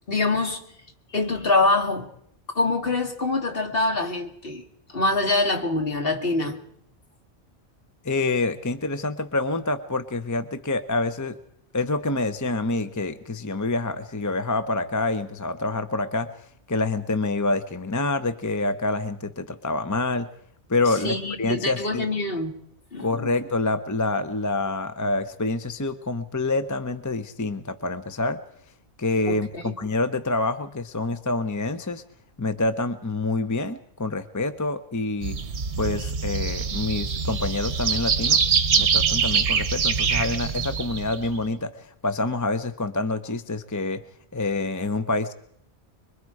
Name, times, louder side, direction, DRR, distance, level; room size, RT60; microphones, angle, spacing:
voice 1, 0.1-0.6 1.1-2.1 2.5-4.6 4.9-6.6 21.0-22.6 22.9-23.3 29.3-29.7, left 2 dB, 55° left, 2.2 m, -24 dB
voice 2, 8.0-11.3 11.7-16.3 16.7-20.3 20.7-22.1 23.0-28.4 29.0-32.0 32.4-35.4 35.8-38.4 38.7-44.0 44.3-45.3, left 2 dB, 20° left, 0.8 m, -27 dB
sound 1, 35.2-41.4, right 6 dB, 80° right, 1.3 m, -24 dB
25.5 x 23.0 x 4.8 m
omnidirectional pair, 1.1 m